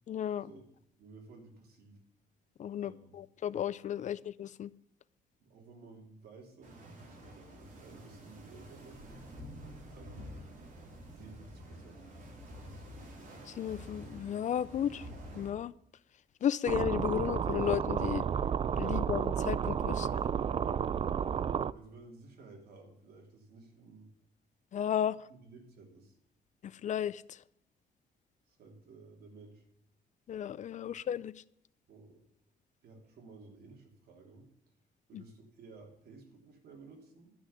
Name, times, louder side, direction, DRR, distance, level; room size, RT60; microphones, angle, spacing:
voice 1, 0.1-0.5 2.6-2.9 3.2-4.7 13.6-15.0 15.4-15.7 16.4-18.2 18.8-20.1 24.7-25.2 26.6-27.2 30.3-31.3, left 9 dB, 50° left, 0.5 m, -33 dB
voice 2, 1.0-2.0 2.7-3.2 5.4-9.0 9.9-10.4 11.1-12.1 12.5-13.1 18.8-19.2 19.9-21.0 21.7-24.1 25.3-26.2 28.5-29.7 30.8-31.0 31.9-32.2 32.8-34.5 35.1-37.3, right 3 dB, 75° right, 3.1 m, -54 dB
sound 1, 6.6-15.5, equal, 55° right, 3.7 m, -49 dB
sound 2, 16.7-21.7, right 8 dB, 35° right, 0.4 m, -31 dB
12.0 x 6.3 x 8.1 m
cardioid pair, 120°, 16 cm